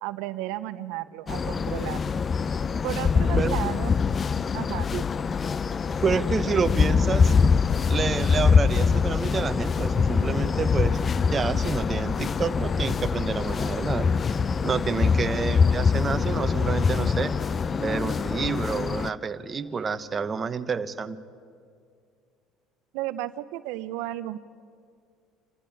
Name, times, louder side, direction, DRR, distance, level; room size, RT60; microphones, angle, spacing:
voice 1, 0.0-2.1 2.8-3.9 4.5-5.1 22.9-24.4, right 15 dB, 80° right, 12 dB, 0.6 m, -33 dB
sound 1, 1.3-19.1, left 5 dB, 30° left, 0.4 m, -24 dB
voice 2, 6.0-7.3 7.9-11.0 11.3-14.1 14.6-17.3 17.8-21.2, right 5 dB, 30° right, 9 dB, 0.9 m, -28 dB
27.5 x 13.0 x 8.6 m, 2.3 s
supercardioid pair, 110°, 0 cm